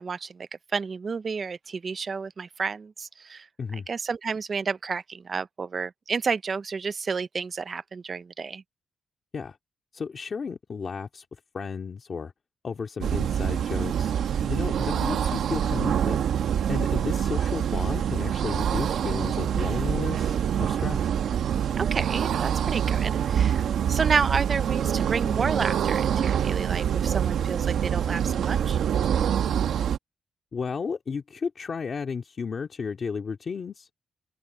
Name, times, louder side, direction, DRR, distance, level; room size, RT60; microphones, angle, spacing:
voice 1, 0.0-3.5 3.7-8.6 21.8-28.8, right 5 dB, 30° right, 0.5 m, -31 dB
voice 2, 9.9-11.3 11.5-12.3 12.6-14.1 14.4-16.2 16.7-21.1 30.5-33.9, left 5 dB, 35° left, 2.2 m, -33 dB
sound 1, 13.0-30.0, right 9 dB, 70° right, 1.0 m, -25 dB
open air
wide cardioid pair, 175°, 0 cm